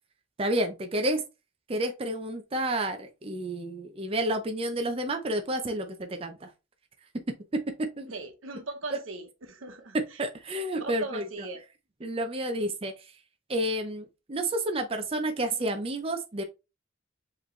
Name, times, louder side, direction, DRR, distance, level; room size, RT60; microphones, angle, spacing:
voice 1, 0.4-1.2 1.7-6.5 7.5-8.1 8.9-9.0 9.9-11.5 12.0-12.9 13.5-16.4, right 1 dB, 30° right, 0.5 m, -30 dB
voice 2, 8.1-10.2 10.8-11.6, right 3 dB, 90° right, 1.0 m, -39 dB
4.9 x 3.2 x 3.1 m
head